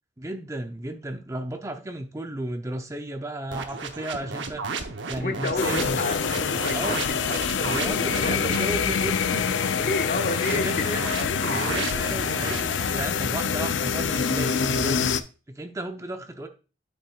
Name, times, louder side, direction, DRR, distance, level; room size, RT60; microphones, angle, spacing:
voice 1, 0.2-6.0 6.7-7.0 7.6-9.5 10.5-11.1 11.4-15.2 15.5-16.5, right 1 dB, 15° right, 6 dB, 0.6 m, -34 dB
sound 1, 3.5-8.8 10.1-12.6, right 4 dB, 80° right, 0.8 m, -34 dB
voice 2, 5.2-8.5 9.7-10.7 11.0-11.7, left 2 dB, 50° left, 6 dB, 0.8 m, -31 dB
sound 2, 5.6-15.2, left 6 dB, 80° left, 0.5 m, -26 dB
8.9 x 5.7 x 2.3 m, 0.33 s
head